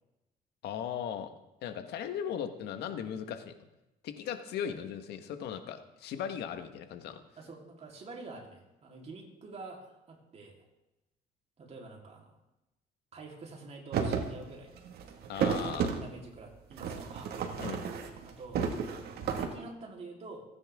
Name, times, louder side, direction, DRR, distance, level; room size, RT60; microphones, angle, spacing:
voice 1, 0.6-1.3 1.6-3.5 4.0-7.2 15.3-15.9 17.6-17.8, left 8 dB, 75° left, 8 dB, 1.5 m, -37 dB
voice 2, 7.4-10.7 11.6-12.4 13.1-14.7 15.3-17.3 18.2-18.9 19.2-20.4, right 3 dB, 40° right, 0 dB, 3.7 m, -47 dB
sound 1, 13.9-14.3 14.7-16.0 16.7-18.3 18.5-19.5, right 6 dB, 70° right, 2.0 m, -32 dB
28.5 x 10.0 x 3.7 m, 0.95 s
cardioid pair, 110°, 17 cm